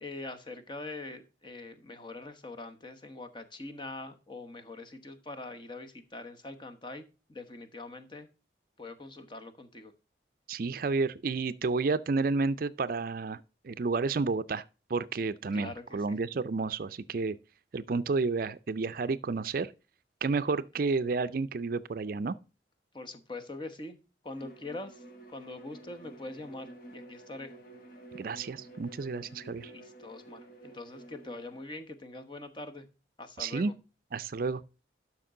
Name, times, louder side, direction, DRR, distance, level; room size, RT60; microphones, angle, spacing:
voice 1, 0.0-8.3 8.8-9.9 15.5-16.2 22.9-27.5 29.6-32.9 33.2-33.7, left 2 dB, 25° left, 1.1 m, -43 dB
voice 2, 10.5-14.6 14.9-17.4 17.7-19.7 20.2-22.4 28.1-29.7 33.4-33.7 34.1-34.6, right 4 dB, 50° right, 0.4 m, -31 dB
Bowed string instrument, 24.3-31.7, right 1 dB, 50° left, 1.9 m, -50 dB
12.0 x 6.0 x 3.7 m
head